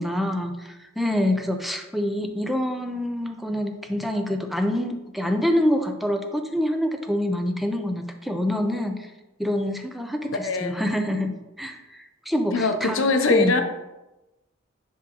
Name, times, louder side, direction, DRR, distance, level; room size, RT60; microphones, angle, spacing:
voice 1, 0.0-9.1 9.4-10.3 10.6-13.0 13.3-13.5, left 1 dB, ahead, 4 dB, 0.4 m, -26 dB
voice 2, 10.4-10.8 12.5-13.6, left 3 dB, 75° left, 6 dB, 0.7 m, -21 dB
9.8 x 3.7 x 2.9 m, 1.0 s
head